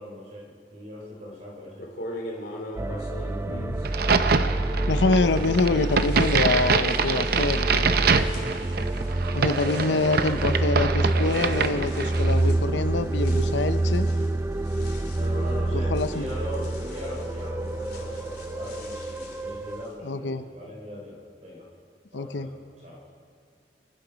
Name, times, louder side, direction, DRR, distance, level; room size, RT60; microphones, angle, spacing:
voice 1, 0.0-1.9 15.1-21.7 22.1-23.0, left 1 dB, 40° right, -3 dB, 3.7 m, -40 dB
sound 1, 1.2-1.3 1.7-4.9 5.2-19.9, left 1 dB, 65° left, 3.1 m, -44 dB
sound 2, 2.8-19.9, right 2 dB, 15° right, 0.3 m, -27 dB
voice 2, 3.5-3.8 4.9-8.0 9.3-14.1 15.7-16.3 20.0-20.5 22.1-22.5, left 3 dB, 90° left, 10 dB, 0.7 m, -26 dB
Crack, 3.8-12.4, right 5 dB, 60° right, 0.7 m, -25 dB
26.5 x 10.0 x 5.2 m, 2.1 s
head